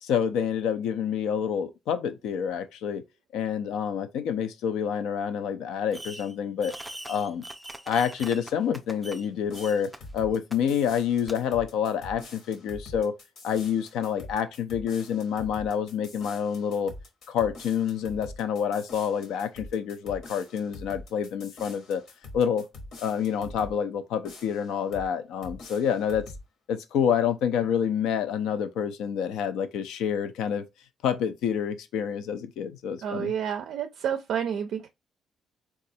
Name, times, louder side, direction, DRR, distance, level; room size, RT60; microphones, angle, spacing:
voice 1, 0.0-3.0 3.3-6.7 7.1-7.4 7.9-13.1 13.4-16.9 17.3-22.0 22.3-22.6 23.0-26.2 26.7-30.6 31.0-33.3, left 8 dB, 90° left, 0.4 m, -28 dB
Fireworks, 5.9-6.3 6.6-9.3 9.5-10.0 10.5-10.6 11.3-11.4, right 1 dB, 5° right, 0.4 m, -42 dB
sound 1, 9.4-23.8 24.2-25.1 25.4-26.5, left 2 dB, 75° left, 1.1 m, -45 dB
voice 2, 33.0-34.9, right 8 dB, 75° right, 0.4 m, -29 dB
4.0 x 2.3 x 2.7 m
cardioid pair, 90°, 0 cm